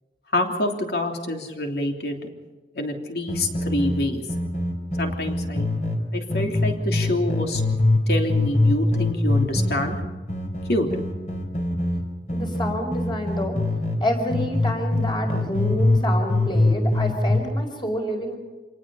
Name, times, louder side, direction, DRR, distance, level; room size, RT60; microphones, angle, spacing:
voice 1, 0.3-2.3 2.7-4.2 5.0-5.7 6.1-7.6 8.1-10.0 10.7-10.9, left 1 dB, 60° left, 2 dB, 3.2 m, -26 dB
sound 1, 3.3-6.0 6.3-8.0 8.3-14.0 14.3-16.0 16.3-17.4, left 2 dB, 45° left, 4.2 m, -23 dB
voice 2, 12.3-13.5 14.0-18.4, equal, 30° left, 3 dB, 4.9 m, -28 dB
27.0 x 19.0 x 5.7 m, 1.3 s
head